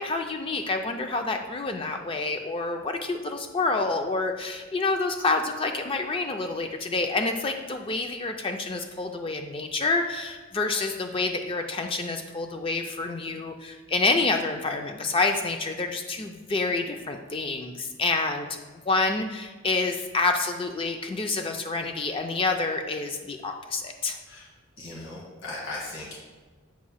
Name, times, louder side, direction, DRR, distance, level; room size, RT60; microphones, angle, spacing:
voice 1, 0.0-18.5 18.9-24.2, left 3 dB, 25° left, 5 dB, 0.3 m, -28 dB
voice 2, 24.8-26.2, left 2 dB, 70° left, -4 dB, 1.3 m, -37 dB
7.2 x 2.6 x 5.6 m, 1.3 s
head